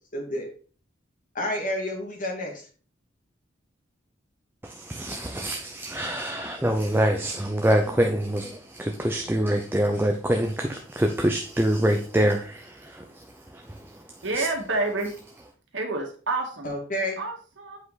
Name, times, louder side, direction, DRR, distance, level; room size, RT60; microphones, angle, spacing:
voice 1, 0.1-0.5 1.3-2.7 16.6-17.2, left 1 dB, 45° left, 1 dB, 2.2 m, -30 dB
voice 2, 4.6-14.5, right 1 dB, 10° right, 3 dB, 0.7 m, -26 dB
voice 3, 14.2-15.1 15.7-16.7 17.2-17.8, right 2 dB, 70° right, 1 dB, 1.9 m, -28 dB
8.0 x 5.0 x 4.1 m, 0.40 s
head